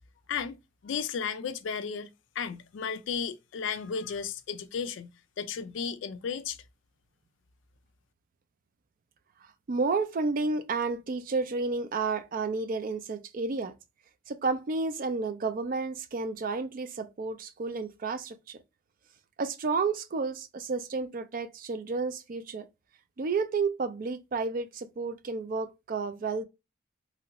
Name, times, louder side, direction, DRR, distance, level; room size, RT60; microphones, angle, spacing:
voice 1, 0.8-6.6, left 6 dB, 65° left, 0.4 m, -34 dB
voice 2, 9.7-13.7 14.3-18.6 19.4-22.7 23.2-26.4, right 4 dB, 45° right, 0.4 m, -31 dB
3.0 x 2.5 x 2.9 m
head